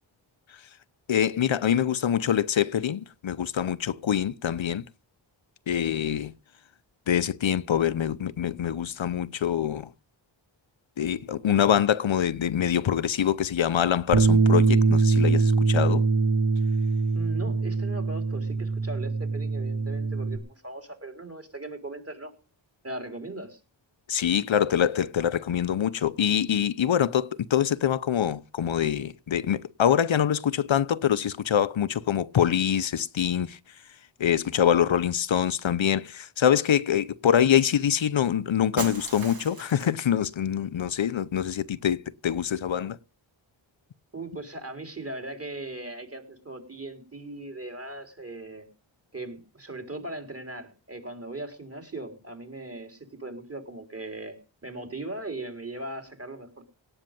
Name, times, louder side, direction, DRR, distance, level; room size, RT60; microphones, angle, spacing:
voice 1, 1.1-4.8 5.7-6.3 7.1-9.9 11.0-16.1 24.1-33.6 34.2-43.0, left 9 dB, 70° left, 0.7 m, -25 dB
Bass guitar, 14.1-20.4, right 4 dB, 85° right, 2.5 m, -23 dB
voice 2, 17.1-22.3 22.8-23.6 44.1-48.6 49.1-54.4 54.6-56.6, right 2 dB, 30° right, 4.1 m, -39 dB
Shatter, 38.8-40.1, right 3 dB, 45° right, 1.6 m, -37 dB
17.5 x 6.5 x 9.1 m
wide cardioid pair, 65°, 47 cm